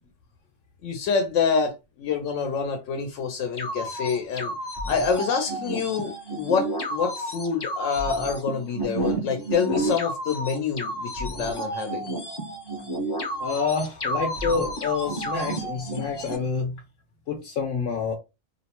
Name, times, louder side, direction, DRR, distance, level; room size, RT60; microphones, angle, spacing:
voice 1, 0.8-4.6 4.9-12.1, left 5 dB, 90° left, 0.9 m, -27 dB
sound 1, 3.6-16.4, right 1 dB, 35° left, 0.4 m, -31 dB
voice 2, 13.4-16.8 17.3-18.1, left 5 dB, 55° left, 0.9 m, -28 dB
2.7 x 2.0 x 2.9 m
omnidirectional pair, 1.2 m